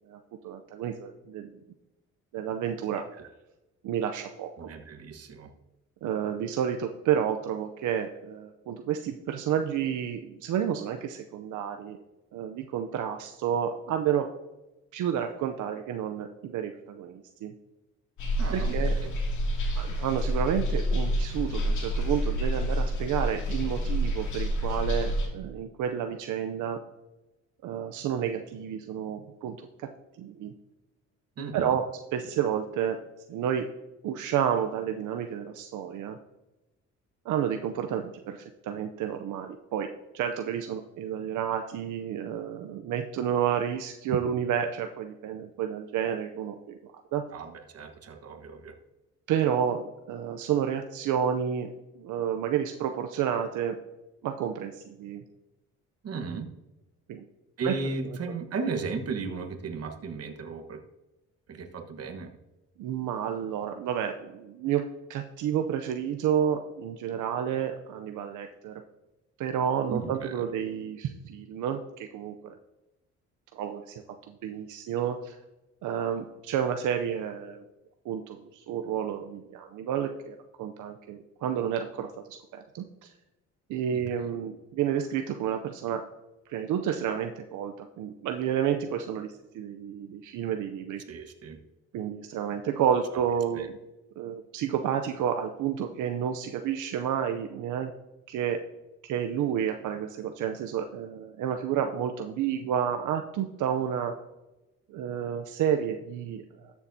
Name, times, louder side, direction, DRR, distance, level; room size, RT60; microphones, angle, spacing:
voice 1, 0.4-1.5 2.3-3.0 3.8-4.5 6.0-12.0 12.3-14.3 14.9-17.5 18.5-18.9 19.8-26.8 27.6-29.9 30.2-30.5 31.5-31.8 32.1-33.0 33.3-33.7 34.0-36.2 37.3-47.2 49.3-53.8 54.2-55.2 57.1-57.2 57.6-57.7 62.8-68.7 69.4-72.5 73.5-73.9 74.3-75.4 75.8-77.6 78.0-83.1 83.7-86.0 86.5-91.0 91.9-93.7 94.2-97.9 98.3-98.6 99.1-104.1 104.9-106.7, right 9 dB, 80° right, 6 dB, 0.6 m, -30 dB
voice 2, 4.6-5.5 18.4-19.1 31.4-31.8 47.3-48.7 56.0-56.5 57.6-60.8 61.5-62.3 69.9-70.3 83.9-84.0 91.1-91.6 93.5-93.7, right 4 dB, 55° right, 5 dB, 1.3 m, -35 dB
sound 1, 18.2-25.3, equal, 75° left, 2.6 m, -28 dB
13.0 x 7.0 x 2.7 m, 1.0 s
cardioid pair, 90°, 30 cm